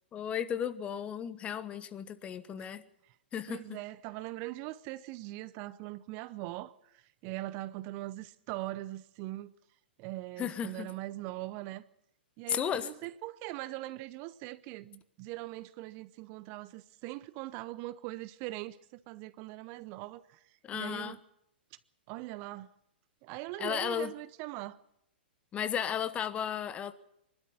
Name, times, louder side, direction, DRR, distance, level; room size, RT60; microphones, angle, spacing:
voice 1, 0.1-2.8 3.3-3.8 10.4-10.9 12.5-12.9 20.6-21.2 23.6-24.1 25.5-26.9, left 9 dB, 20° left, 1.2 m, -34 dB
voice 2, 3.5-9.5 10.0-11.8 12.4-20.4 20.7-21.2 22.1-22.7 23.2-24.8, right 17 dB, 35° right, 0.7 m, -41 dB
24.0 x 12.5 x 9.6 m
figure-of-eight pair, 110°, 6 cm